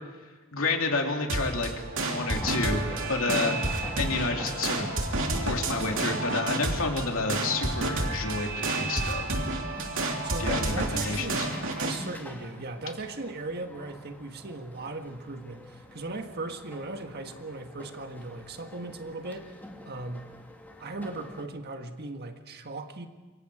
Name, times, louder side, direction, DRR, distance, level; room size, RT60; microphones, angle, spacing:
voice 1, 0.5-3.6 4.0-4.9 5.4-9.4 10.4-11.4, left 3 dB, 70° left, 2 dB, 3.0 m, -30 dB
sound 1, 1.3-12.0, right 2 dB, 65° right, 3.1 m, -30 dB
sound 2, 2.4-21.4, equal, 10° left, 2.6 m, -47 dB
voice 2, 10.2-11.5 11.7-19.5 19.8-20.3 20.8-23.1, right 2 dB, 50° right, 6 dB, 1.7 m, -38 dB
27.5 x 23.0 x 5.0 m, 1.3 s
head